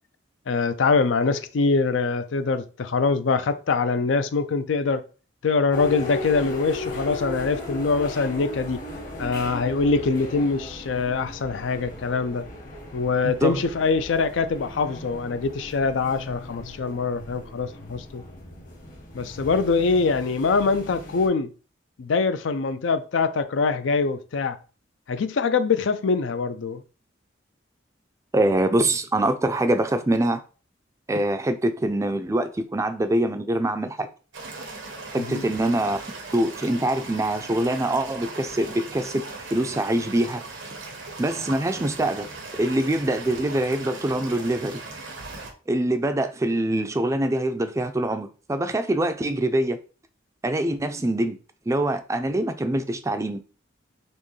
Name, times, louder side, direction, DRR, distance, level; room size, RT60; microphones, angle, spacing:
voice 1, 0.5-5.0 5.4-8.8 9.2-12.4 12.9-18.2 19.1-21.5 22.0-24.6 25.1-26.8 35.2-35.4, left 4 dB, 80° left, 0.4 m, -24 dB
sound 1, 5.7-21.3, left 1 dB, 45° left, 1.0 m, -37 dB
voice 2, 28.3-30.4 31.1-34.1 35.1-36.0 36.3-39.2 39.5-40.4 41.2-42.3 42.6-44.8 45.7-49.8 50.4-51.4 51.7-53.4, right 1 dB, 15° right, 0.4 m, -24 dB
sound 2, 34.3-45.5, right 3 dB, 85° right, 0.9 m, -38 dB
4.3 x 3.1 x 3.2 m
head